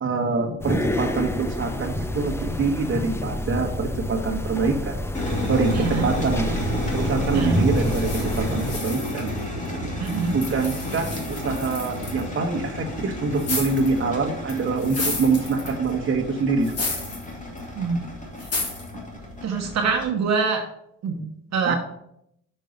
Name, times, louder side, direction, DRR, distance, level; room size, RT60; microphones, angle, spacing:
voice 1, 0.0-5.0 5.5-6.5 6.9-9.3 10.3-16.9 21.6-21.7, right 4 dB, 40° right, 2 dB, 1.3 m, -25 dB
sound 1, 0.6-8.8, left 1 dB, 10° left, 0.7 m, -28 dB
sound 2, 5.1-20.1, left 1 dB, 25° left, 2.5 m, -31 dB
voice 2, 5.7-6.1 7.3-7.6 10.0-10.3 17.8-18.0 19.4-20.6 21.0-21.2 21.5-21.7, right 5 dB, 60° right, 2 dB, 1.2 m, -24 dB
sound 3, 7.8-9.7 10.0-12.2 13.4-14.0 14.5-15.9 16.6-17.3 17.6-17.7 18.4-18.9, left 3 dB, 55° left, 3.2 m, -32 dB
6.5 x 5.5 x 5.3 m, 0.75 s
cardioid pair, 90°, 30 cm